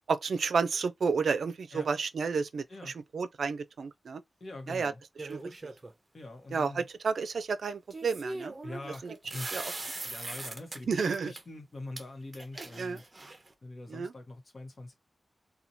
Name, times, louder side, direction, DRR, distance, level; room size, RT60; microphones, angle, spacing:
voice 1, 0.1-4.2 4.7-4.9 5.3-5.4 6.5-8.6 9.0-9.1 9.5-9.6 10.9-11.3 12.8-13.0 13.9-14.1, right 5 dB, 80° right, 0.4 m, -31 dB
voice 2, 4.4-5.0 6.1-6.9 8.6-13.0 13.6-14.9, left 2 dB, 50° left, 1.0 m, -44 dB
sound 1, 5.2-5.9 7.9-10.8 11.1-11.4 12.0-12.1 12.3-13.5, right 2 dB, 30° right, 0.6 m, -40 dB
2.9 x 2.3 x 2.6 m
wide cardioid pair, 95°, 0 cm